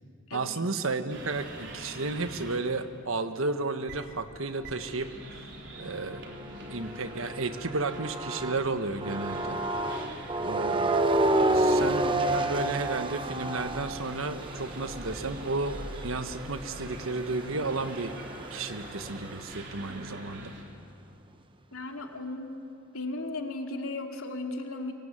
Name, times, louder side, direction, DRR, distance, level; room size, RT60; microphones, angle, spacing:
voice 1, 0.3-5.1 5.8-6.2 6.7-9.6 10.4-11.2 11.5-18.1 18.5-20.5, right 3 dB, 75° right, 9 dB, 1.4 m, -32 dB
sound 1, 1.1-2.6 3.9-4.0 4.6-20.6, right 1 dB, 60° right, 3.8 m, -44 dB
sound 2, 5.8-8.6 9.0-19.4, right 2 dB, 25° right, 1.0 m, -31 dB
voice 2, 21.7-22.6 22.9-24.9, left 2 dB, 85° left, 3 dB, 2.7 m, -36 dB
23.5 x 23.0 x 9.8 m, 2.6 s
head